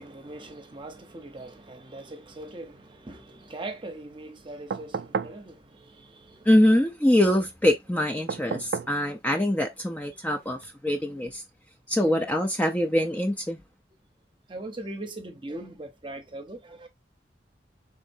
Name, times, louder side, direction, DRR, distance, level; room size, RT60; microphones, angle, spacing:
voice 1, 0.0-6.5 10.2-10.3 14.5-16.9, right 2 dB, 25° right, 0.8 m, -41 dB
sound 1, 4.7-5.4 8.3-9.0 10.6-10.7, right 5 dB, 65° right, 0.3 m, -32 dB
voice 2, 6.5-11.4 11.9-13.6, left 1 dB, 10° left, 0.5 m, -24 dB
4.4 x 3.7 x 2.6 m
head